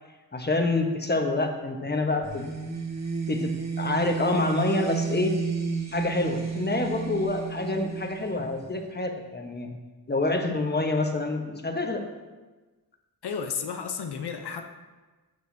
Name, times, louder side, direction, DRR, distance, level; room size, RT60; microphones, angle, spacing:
voice 1, 0.3-2.5 3.3-3.5 3.8-5.4 5.9-9.7 10.1-12.0, left 2 dB, 25° left, 4 dB, 1.2 m, -27 dB
sound 1, 2.2-8.9, right 5 dB, 45° right, 1.7 m, -32 dB
voice 2, 13.2-14.7, left 6 dB, 85° left, 6 dB, 0.9 m, -32 dB
12.5 x 6.7 x 2.8 m, 1.2 s
cardioid pair, 55°, 39 cm